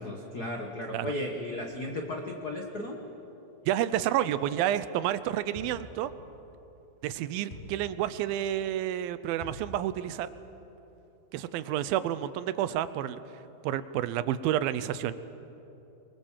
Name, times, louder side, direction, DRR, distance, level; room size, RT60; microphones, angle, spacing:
voice 1, 0.0-3.0, left 1 dB, 65° left, 2 dB, 0.9 m, -35 dB
voice 2, 3.7-6.1 7.0-10.3 11.3-13.2 13.6-15.1, right 12 dB, 85° right, 14 dB, 2.5 m, -30 dB
sound 1, 5.5-6.0 7.5-7.9 9.4-9.8, equal, 20° left, 3.1 m, -44 dB
24.0 x 23.0 x 7.4 m, 3.0 s
omnidirectional pair, 4.2 m